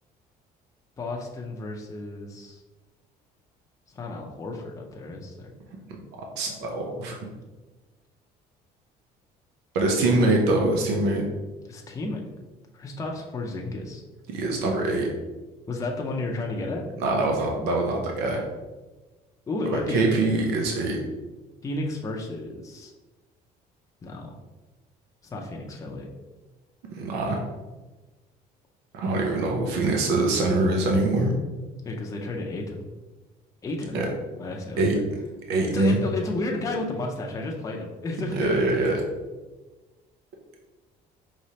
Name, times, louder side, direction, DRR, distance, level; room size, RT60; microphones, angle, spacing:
voice 1, 1.0-2.6 3.9-5.5 11.7-12.2 12.7-14.0 15.7-16.8 19.5-20.0 21.6-22.9 24.0-24.4 25.2-26.1 31.8-32.9 33.6-34.0 34.4-35.0 35.6-38.6, left 2 dB, 20° left, 0 dB, 0.5 m, -32 dB
voice 2, 6.2-7.2 9.7-11.2 14.3-15.1 17.0-18.4 19.7-21.0 27.0-27.4 28.9-31.3 33.9-34.1 34.8-34.9 35.5-36.0 38.3-39.0, right 2 dB, 85° right, 1 dB, 0.7 m, -23 dB
5.0 x 3.1 x 2.8 m, 1.2 s
cardioid pair, 130°, 16 cm